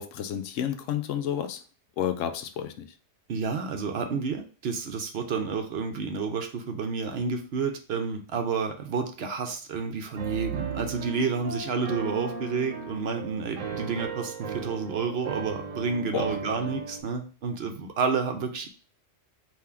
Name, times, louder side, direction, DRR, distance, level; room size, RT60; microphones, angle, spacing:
voice 1, 0.0-1.6 2.0-2.9 16.1-16.3, left 9 dB, 90° left, 9 dB, 0.9 m, -30 dB
voice 2, 3.3-18.7, right 5 dB, 60° right, 5 dB, 0.9 m, -30 dB
Piano, 10.2-17.0, right 6 dB, 90° right, 1.1 m, -36 dB
3.7 x 2.7 x 4.3 m, 0.38 s
omnidirectional pair, 1.3 m